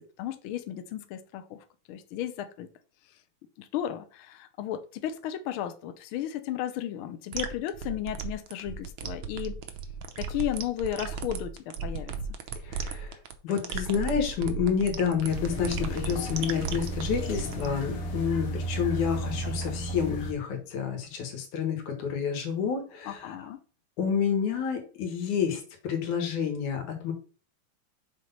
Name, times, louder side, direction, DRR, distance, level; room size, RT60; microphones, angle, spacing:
voice 1, 0.0-2.7 3.6-9.6 10.2-11.5 11.8-12.1 23.0-23.6, left 11 dB, 70° left, 9 dB, 1.3 m, -34 dB
sound 1, 7.3-17.7, right 6 dB, 75° right, 1.2 m, -35 dB
voice 2, 12.6-13.2 13.4-23.5 24.0-27.1, left 7 dB, 90° left, 4 dB, 3.0 m, -29 dB
sound 2, 15.3-20.3, right 1 dB, 55° left, 2.0 m, -34 dB
6.6 x 4.1 x 5.4 m, 0.38 s
omnidirectional pair, 3.3 m